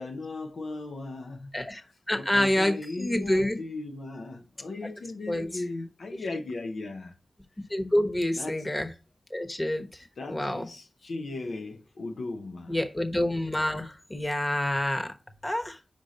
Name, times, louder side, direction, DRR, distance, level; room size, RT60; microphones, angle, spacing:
voice 1, 0.0-7.1 8.4-8.6 10.2-12.8, left 3 dB, 85° left, 0.7 m, -37 dB
voice 2, 2.1-3.6 5.3-5.6 7.7-8.9 9.3-9.9 10.3-10.7 12.7-15.1 15.4-15.8, left 1 dB, 25° left, 1.2 m, -27 dB
5.2 x 5.0 x 4.0 m
cardioid pair, 45°, 0 cm